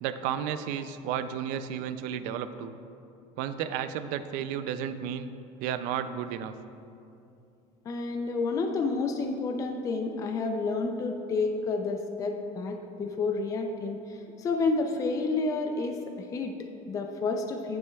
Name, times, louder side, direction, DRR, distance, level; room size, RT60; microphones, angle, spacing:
voice 1, 0.0-2.8 3.4-5.3 5.6-6.5, right 9 dB, 65° right, 12 dB, 0.4 m, -32 dB
voice 2, 7.9-17.8, left 3 dB, 20° left, 4 dB, 0.4 m, -30 dB
9.4 x 9.1 x 2.3 m, 2.6 s
cardioid pair, 155°, 15 cm